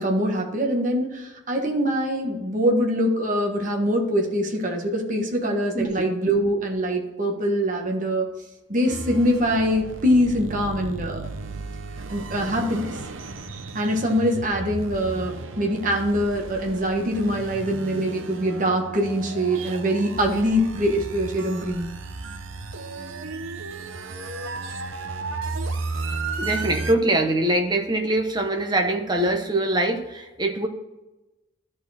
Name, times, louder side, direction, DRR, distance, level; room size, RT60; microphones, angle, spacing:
voice 1, 0.0-8.3 8.7-11.3 12.1-13.0 13.7-21.9, equal, 40° right, 1 dB, 1.3 m, -23 dB
sound 1, 8.9-26.9, right 3 dB, 85° right, 0.8 m, -34 dB
voice 2, 26.4-30.7, right 1 dB, 20° right, 4 dB, 1.0 m, -23 dB
12.0 x 4.3 x 4.3 m, 1.0 s
head